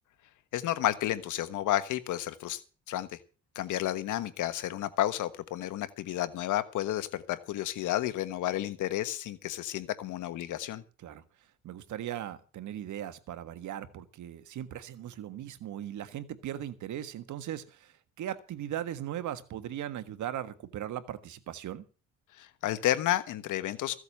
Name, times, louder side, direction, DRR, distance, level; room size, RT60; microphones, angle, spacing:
voice 1, 0.5-2.6 2.9-3.1 3.5-10.8 22.3-24.0, left 13 dB, 85° left, 12 dB, 1.4 m, -31 dB
voice 2, 11.6-21.8, right 11 dB, 75° right, 11 dB, 1.6 m, -38 dB
15.0 x 8.1 x 6.7 m, 0.35 s
cardioid pair, 90°, 30 cm